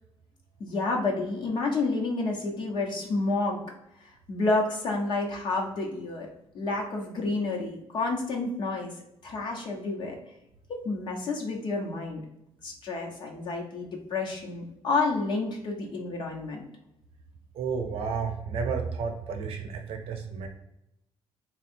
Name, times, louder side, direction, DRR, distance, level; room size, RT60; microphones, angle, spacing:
voice 1, 0.6-3.6 4.3-6.3 6.5-8.9 9.2-10.2 10.7-12.2 12.6-16.6, left 3 dB, 50° left, 0 dB, 1.0 m, -29 dB
voice 2, 17.5-20.5, right 5 dB, 70° right, 4 dB, 0.7 m, -31 dB
3.6 x 2.4 x 4.3 m, 0.83 s
cardioid pair, 160°, 10 cm